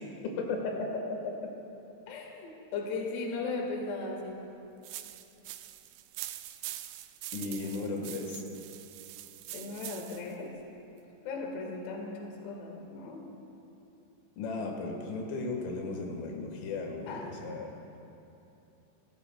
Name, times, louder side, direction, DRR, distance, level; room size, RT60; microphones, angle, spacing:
voice 1, 0.2-1.0 7.3-8.4 14.4-17.7, left 3 dB, 90° left, 1 dB, 4.0 m, -35 dB
voice 2, 2.1-4.4 7.4-8.0 9.5-10.5 11.2-13.2 17.1-17.3, left 3 dB, 65° left, 0 dB, 3.5 m, -37 dB
sound 1, 4.8-10.3, right 14 dB, 85° right, 3.0 m, -44 dB
26.5 x 15.0 x 2.2 m, 2.9 s
omnidirectional pair, 5.5 m